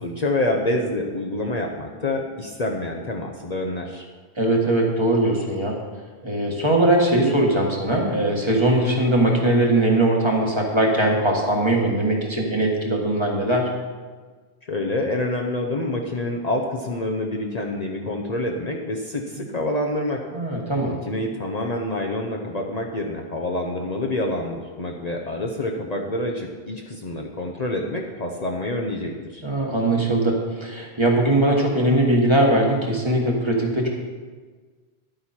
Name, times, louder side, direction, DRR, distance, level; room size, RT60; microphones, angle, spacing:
voice 1, 0.0-4.0 14.7-20.2 20.9-29.4, left 1 dB, 40° left, 0 dB, 0.9 m, -27 dB
voice 2, 4.4-5.8 6.2-13.7 19.4-19.5 20.3-21.0 29.4-33.9, right 1 dB, 25° right, -1 dB, 1.7 m, -20 dB
11.5 x 8.8 x 4.4 m, 1.4 s
omnidirectional pair, 1.1 m